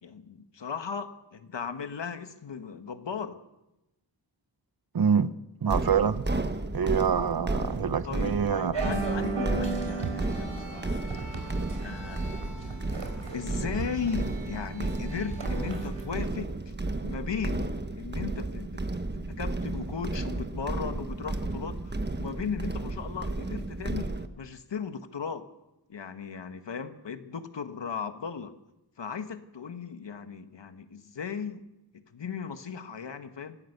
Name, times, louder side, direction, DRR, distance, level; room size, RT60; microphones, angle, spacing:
voice 1, 0.0-3.4 8.0-11.0 11.8-12.8 13.3-16.7 17.0-18.8 19.1-25.5 25.9-28.5 29.0-31.7 31.9-33.6, left 6 dB, 75° left, 8 dB, 1.6 m, -37 dB
voice 2, 4.9-5.3 5.6-6.3 6.7-8.7, right 7 dB, 55° right, 13 dB, 1.0 m, -26 dB
sound 1, 5.7-24.3, right 2 dB, 25° right, 1.3 m, -33 dB
sound 2, 8.7-16.1, right 3 dB, 90° right, 4.6 m, -35 dB
25.5 x 15.5 x 6.8 m, 0.94 s
wide cardioid pair, 85°, 43 cm